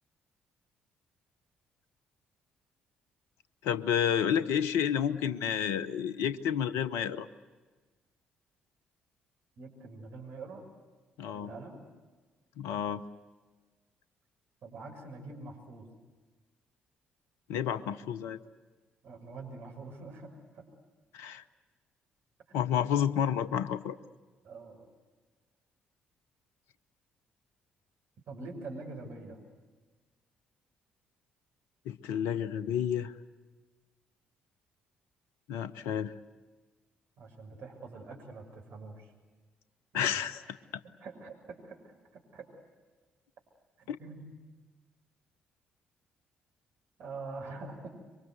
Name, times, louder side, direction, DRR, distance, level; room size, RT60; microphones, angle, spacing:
voice 1, 3.6-7.3 11.2-11.5 12.6-13.0 17.5-18.4 21.1-21.4 22.5-24.0 31.9-33.1 35.5-36.1 39.9-40.6 43.9-44.0, left 9 dB, 65° left, 15 dB, 0.8 m, -30 dB
voice 2, 9.6-10.6 11.3-11.8 14.6-15.9 19.0-20.7 22.5-22.8 24.4-24.9 28.3-29.4 37.2-39.1 40.2-40.3 41.0-42.4 43.8-44.5 47.0-48.0, right 3 dB, 55° right, 1 dB, 6.4 m, -45 dB
27.0 x 23.5 x 8.1 m, 1.3 s
figure-of-eight pair, 45°, 5 cm